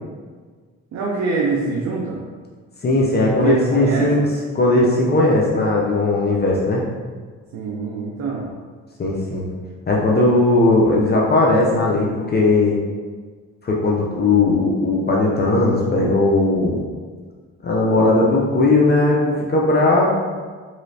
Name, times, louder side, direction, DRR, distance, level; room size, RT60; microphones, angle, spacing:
voice 1, 0.9-2.2 3.4-4.2 7.5-8.5 18.0-18.1, right 4 dB, 65° right, -3 dB, 0.6 m, -24 dB
voice 2, 2.8-4.2 4.5-6.8 9.0-9.5 9.9-12.8 13.6-16.8 17.6-20.1, left 2 dB, 35° left, -3 dB, 0.5 m, -17 dB
3.1 x 3.1 x 2.7 m, 1.5 s
cardioid pair, 90°, 30 cm